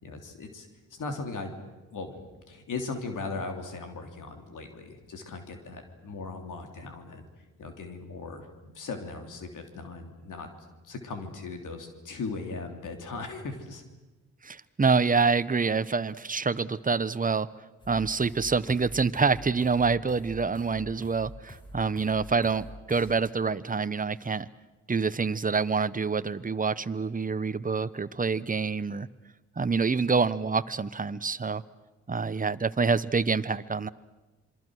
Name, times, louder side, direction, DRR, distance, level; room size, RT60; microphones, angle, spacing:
voice 1, 0.0-1.5 1.9-7.2 7.6-10.5 10.8-13.8, left 3 dB, 75° left, 5 dB, 3.1 m, -38 dB
voice 2, 14.4-17.5 17.9-24.5 24.9-29.1 29.6-31.6 32.1-33.9, right 4 dB, 25° right, 14 dB, 1.0 m, -26 dB
sound 1, 17.8-23.1, left 1 dB, 15° left, 4.1 m, -46 dB
27.0 x 23.0 x 6.4 m, 1.2 s
supercardioid pair, 45°, 32 cm